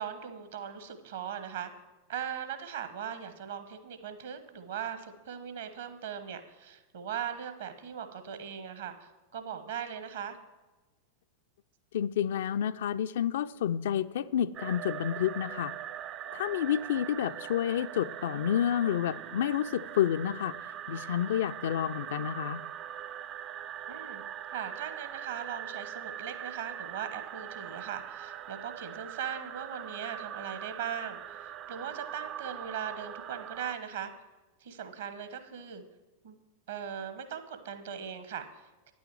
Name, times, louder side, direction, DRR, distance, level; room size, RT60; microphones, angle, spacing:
voice 1, 0.0-1.7 2.1-10.4 23.9-24.2 24.5-34.1 34.6-35.8 36.2-36.4 36.7-38.9, right 8 dB, 60° right, 9 dB, 1.1 m, -39 dB
voice 2, 11.9-15.7 16.3-20.6 20.9-22.6, left 10 dB, 60° left, 13 dB, 0.3 m, -29 dB
sound 1, 14.5-33.7, right 10 dB, 35° right, 0.4 m, -42 dB
9.6 x 6.2 x 7.3 m, 1.2 s
figure-of-eight pair, 90°, 0 cm